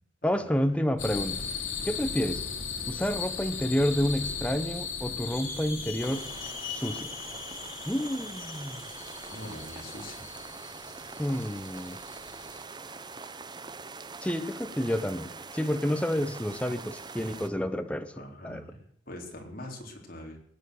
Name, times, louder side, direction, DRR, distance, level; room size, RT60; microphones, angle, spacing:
voice 1, 0.2-1.4 1.8-2.4 2.9-6.3 6.7-7.1 7.9-8.8 11.2-12.0 14.2-18.1 18.4-18.6, equal, 5° left, 9 dB, 0.9 m, -29 dB
sound 1, 1.0-12.6, left 5 dB, 75° left, 3.0 m, -38 dB
sound 2, 6.0-17.5, right 4 dB, 20° right, 0.6 m, -44 dB
voice 2, 9.3-10.3 18.1-20.4, left 1 dB, 45° left, 1 dB, 3.9 m, -43 dB
19.5 x 9.3 x 6.5 m, 0.65 s
head